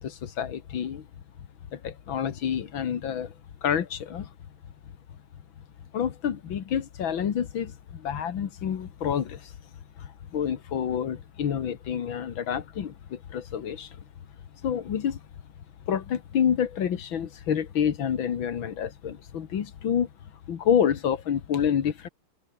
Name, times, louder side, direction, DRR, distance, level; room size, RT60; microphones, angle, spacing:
voice 1, 0.0-1.1 1.7-3.3 3.6-4.3 5.9-9.5 10.0-13.9 14.6-15.2 15.9-20.1 20.5-22.1, left 8 dB, 65° left, 2.2 m, -28 dB
omnidirectional pair, 2.4 m